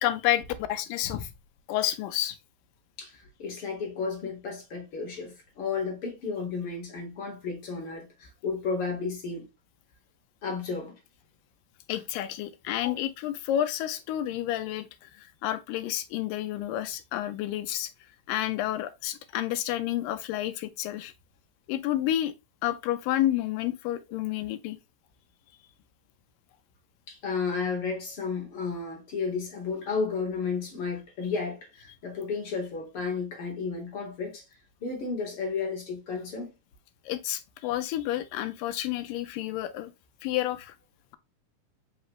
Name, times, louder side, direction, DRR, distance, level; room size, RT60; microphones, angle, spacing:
voice 1, 0.0-0.4 0.7-1.3 1.7-2.4 11.9-17.9 18.3-21.1 21.7-22.3 22.6-24.8 37.1-39.9 40.2-40.8, left 13 dB, 85° left, 2.3 m, -30 dB
voice 2, 3.0-9.5 10.4-11.0 12.8-13.0 27.1-34.4 34.8-36.5, left 5 dB, 45° left, 2.2 m, -33 dB
5.2 x 3.2 x 3.0 m
omnidirectional pair, 3.8 m